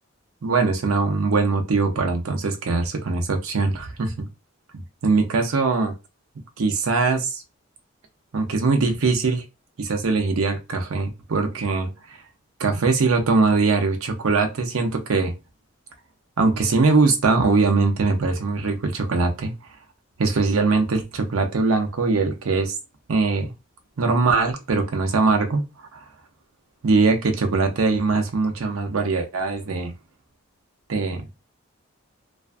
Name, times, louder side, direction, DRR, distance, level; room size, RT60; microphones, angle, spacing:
voice 1, 0.4-4.3 5.0-5.9 6.6-7.4 8.3-9.4 9.8-12.2 12.6-15.3 16.4-19.5 20.2-22.8 23.1-23.5 24.0-25.6 25.9-26.0 26.8-29.9 30.9-31.4, right 3 dB, 85° right, 4 dB, 0.6 m, -21 dB
2.4 x 2.3 x 2.4 m, 0.26 s
head